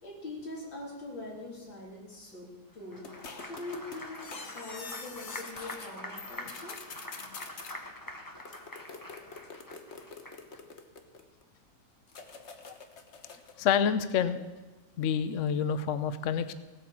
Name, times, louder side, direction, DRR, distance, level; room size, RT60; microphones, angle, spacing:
voice 1, 0.0-3.1 3.4-6.8, left 2 dB, 85° left, -3 dB, 4.4 m, -43 dB
Applause, 2.8-10.6, left 1 dB, 15° left, 1.0 m, -45 dB
sound 1, 3.0-5.9 6.2-7.8 8.4-11.4 12.1-13.6, left 4 dB, 45° left, 1.3 m, -46 dB
voice 2, 13.6-14.4 15.0-16.5, left 7 dB, 60° left, 11 dB, 0.9 m, -28 dB
17.0 x 8.9 x 7.2 m, 1.2 s
omnidirectional pair, 2.0 m